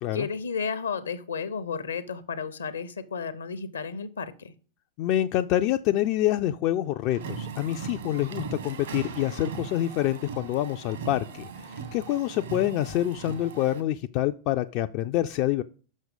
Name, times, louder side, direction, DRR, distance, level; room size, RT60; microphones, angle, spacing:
voice 1, 0.1-4.5, left 5 dB, 70° left, 0.6 m, -33 dB
voice 2, 5.0-15.6, left 13 dB, 45° left, 0.3 m, -27 dB
sound 1, 7.1-13.8, right 5 dB, 65° right, 1.3 m, -38 dB
6.4 x 6.0 x 5.2 m
figure-of-eight pair, 90°, 0 cm